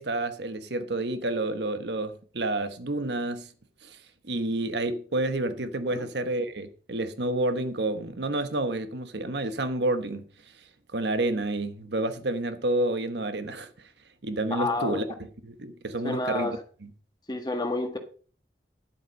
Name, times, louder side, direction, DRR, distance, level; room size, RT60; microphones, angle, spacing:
voice 1, 0.0-3.5 3.8-4.0 4.2-10.3 10.9-13.9 14.2-16.9, right 2 dB, 75° right, 1.2 m, -29 dB
voice 2, 14.5-15.0 16.0-16.5 17.3-18.0, left 2 dB, 25° left, 1.5 m, -29 dB
10.5 x 8.1 x 5.2 m
head